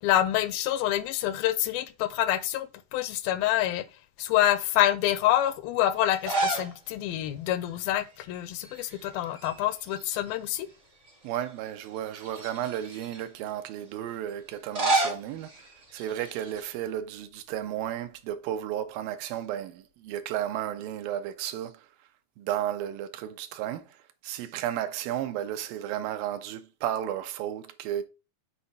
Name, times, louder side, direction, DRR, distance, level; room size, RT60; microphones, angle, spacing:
voice 1, 0.0-3.9 4.2-10.7, left 12 dB, 85° left, 2.4 m, -27 dB
sound 1, 6.1-6.8 7.1-7.2 8.5-9.0 9.3-10.5 11.1-11.2 12.1-13.2 14.5-16.7, right 2 dB, 35° right, 1.1 m, -31 dB
voice 2, 11.2-21.9 22.4-28.0, right 11 dB, 80° right, 2.4 m, -33 dB
6.8 x 4.2 x 4.8 m
omnidirectional pair, 4.2 m